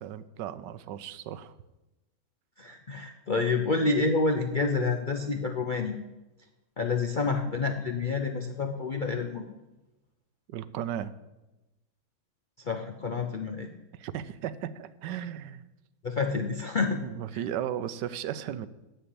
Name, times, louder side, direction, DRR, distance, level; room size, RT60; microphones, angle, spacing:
voice 1, 0.0-1.5 10.5-11.1 14.0-15.6 17.0-18.7, right 10 dB, 80° right, 15 dB, 1.2 m, -35 dB
voice 2, 2.6-5.9 6.8-9.4 12.6-13.7 16.0-17.0 17.3-17.4, left 3 dB, 75° left, 3 dB, 0.4 m, -28 dB
7.9 x 7.8 x 8.5 m, 1.0 s
omnidirectional pair, 1.9 m